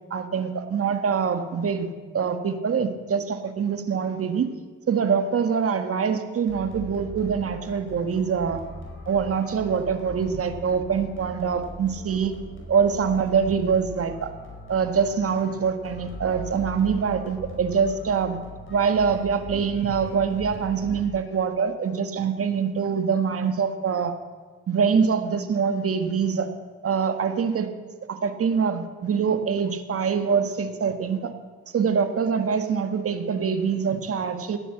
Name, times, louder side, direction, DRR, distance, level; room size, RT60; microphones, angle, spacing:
voice 1, 0.1-4.6 4.9-8.6 9.1-12.3 12.7-14.3 14.7-18.4 18.7-24.1 24.7-26.5 26.8-27.7 28.1-31.3 31.7-34.6, right 6 dB, 50° right, 8 dB, 1.7 m, -24 dB
sound 1, 6.5-21.4, equal, 40° left, 5.4 m, -40 dB
16.0 x 10.0 x 8.5 m, 1.5 s
cardioid pair, 90°, 30 cm